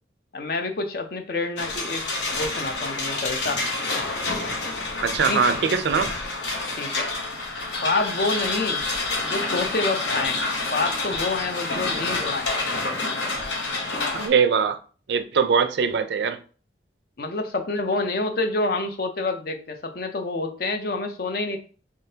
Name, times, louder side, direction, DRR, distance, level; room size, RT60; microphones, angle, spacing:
voice 1, 0.3-2.0 2.3-3.6 5.3-5.4 6.8-7.1 7.8-8.8 9.2-10.4 10.7-12.5 17.2-21.6, left 3 dB, 55° left, 0.5 m, -27 dB
sound 1, 1.6-14.3, left 3 dB, 80° left, 1.0 m, -28 dB
voice 2, 5.0-6.1 14.1-14.8 15.1-16.4, right 6 dB, 70° right, 0.4 m, -21 dB
3.6 x 3.5 x 2.8 m
head